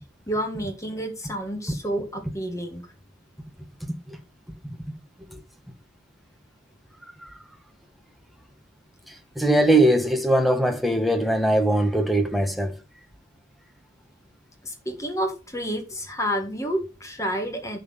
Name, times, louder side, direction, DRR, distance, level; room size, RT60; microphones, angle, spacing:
voice 1, 0.3-2.8 14.6-17.8, equal, 15° left, 1.8 m, -29 dB
voice 2, 9.4-12.7, right 1 dB, ahead, 1.2 m, -21 dB
10.5 x 3.9 x 7.3 m
head